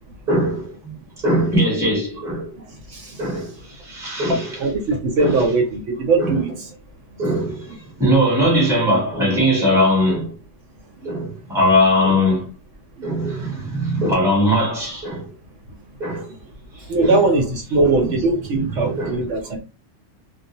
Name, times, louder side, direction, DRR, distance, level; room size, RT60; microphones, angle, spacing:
voice 1, 0.3-2.5 3.2-4.7 5.2-5.5 6.2-6.4 7.2-10.4 11.0-12.5 13.0-15.3 16.0-16.3 17.0-17.2 18.0-18.2 18.5-19.2, equal, ahead, 1.0 m, -20 dB
voice 2, 2.9-3.2 4.6-6.7 13.0-13.4 16.8-19.6, right 3 dB, 70° right, 1.0 m, -20 dB
2.4 x 2.1 x 2.8 m
omnidirectional pair, 1.3 m